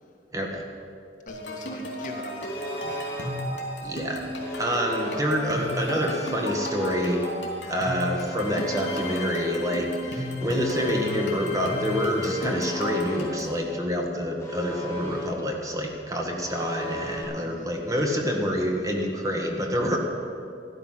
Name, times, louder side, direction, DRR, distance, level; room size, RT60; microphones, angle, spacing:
voice 1, 0.3-0.6 3.8-4.3 4.6-7.2 7.7-20.0, equal, 20° right, 1 dB, 1.5 m, -27 dB
sound 1, 1.3-13.6, equal, 75° left, 3.0 m, -34 dB
voice 2, 1.3-3.1 17.4-17.8, left 1 dB, 45° left, 3 dB, 1.4 m, -42 dB
Alarm, 2.4-3.3 4.4-5.3 6.4-7.3 8.4-9.3 10.4-11.3 12.4-13.3 14.4-15.3 16.4-17.2, equal, 15° left, 3.1 m, -35 dB
12.5 x 12.5 x 5.8 m, 2.4 s
head